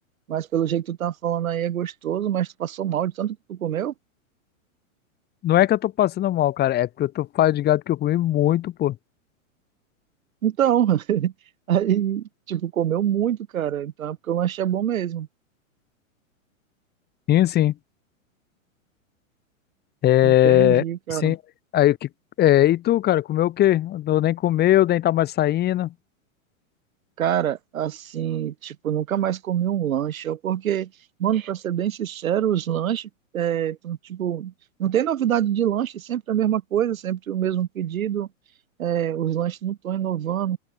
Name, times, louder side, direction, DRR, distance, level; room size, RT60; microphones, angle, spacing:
voice 1, 0.3-3.9 10.4-11.3 11.7-15.3 20.2-21.4 27.2-30.9 31.2-34.5 34.8-38.3 38.8-40.6, right 10 dB, 75° right, 4.4 m, -25 dB
voice 2, 5.4-9.0 17.3-17.7 20.0-20.8 21.1-21.4 21.7-22.1 22.4-25.9, left 13 dB, 25° left, 2.8 m, -20 dB
open air
hypercardioid pair, 145°, 41 cm